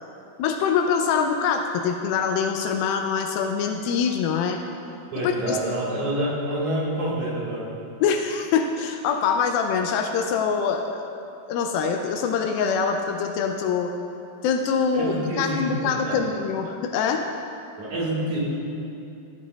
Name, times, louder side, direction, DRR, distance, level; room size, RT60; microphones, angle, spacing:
voice 1, 0.4-4.6 5.2-5.6 8.0-11.2 11.5-13.9 14.4-17.3, left 6 dB, 85° left, 4 dB, 2.3 m, -24 dB
voice 2, 5.1-7.7 14.9-16.2 17.8-18.4, right 1 dB, 60° right, -6 dB, 2.7 m, -27 dB
14.0 x 10.0 x 2.3 m, 2.7 s
omnidirectional pair, 4.2 m